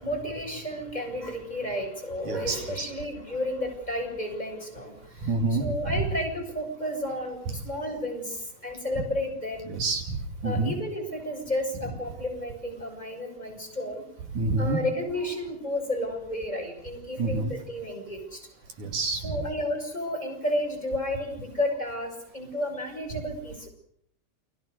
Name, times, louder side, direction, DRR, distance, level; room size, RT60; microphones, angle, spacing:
voice 1, 0.0-4.9 5.2-7.4 7.6-8.4 8.6-9.7 10.4-14.0 14.6-18.4 19.2-23.7, left 1 dB, 10° left, 2 dB, 7.3 m, -32 dB
voice 2, 2.3-2.9 5.2-6.1 9.7-10.7 14.3-14.8 17.2-17.5 18.8-19.3, right 3 dB, 70° right, 6 dB, 4.1 m, -28 dB
29.5 x 22.5 x 6.7 m, 0.68 s
omnidirectional pair, 3.7 m